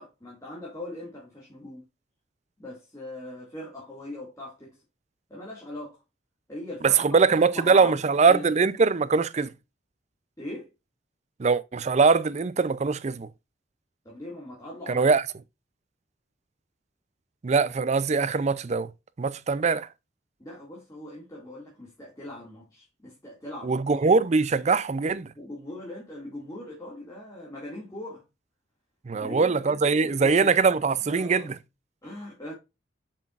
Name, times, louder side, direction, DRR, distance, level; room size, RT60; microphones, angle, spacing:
voice 1, 0.0-1.9 2.6-4.8 5.3-6.0 6.5-8.0 8.2-8.5 10.4-10.7 14.0-15.1 20.4-23.8 25.4-28.2 29.1-30.5 31.1-31.5 32.0-32.5, left 1 dB, 20° left, 2.1 m, -40 dB
voice 2, 6.8-9.5 11.4-13.3 14.9-15.2 17.4-18.9 19.2-19.9 23.6-25.3 29.1-31.5, right 4 dB, 40° right, 0.5 m, -22 dB
7.4 x 6.0 x 2.5 m
head